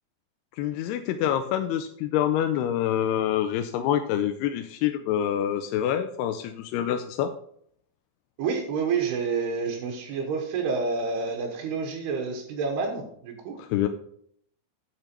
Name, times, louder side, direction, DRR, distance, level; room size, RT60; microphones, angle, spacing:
voice 1, 0.6-7.3 13.6-13.9, left 10 dB, 90° left, 7 dB, 2.6 m, -26 dB
voice 2, 8.4-13.6, right 5 dB, 80° right, 1 dB, 3.2 m, -29 dB
9.0 x 8.0 x 4.4 m, 0.65 s
omnidirectional pair, 4.6 m